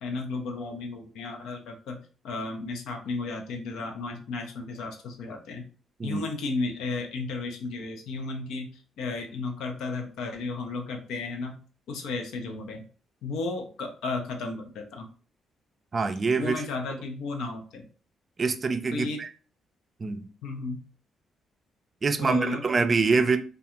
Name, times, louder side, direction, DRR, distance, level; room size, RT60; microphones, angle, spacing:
voice 1, 0.0-5.6 6.0-11.6 11.9-12.9 13.2-15.1 16.4-17.9 18.9-19.2 20.4-20.8 22.1-22.6, left 3 dB, 85° left, 0.6 m, -34 dB
voice 2, 15.9-16.5 18.4-19.3 20.0-20.3 22.0-23.4, right 4 dB, 35° right, 0.3 m, -25 dB
2.4 x 2.3 x 2.8 m
cardioid pair, 90°, 0 cm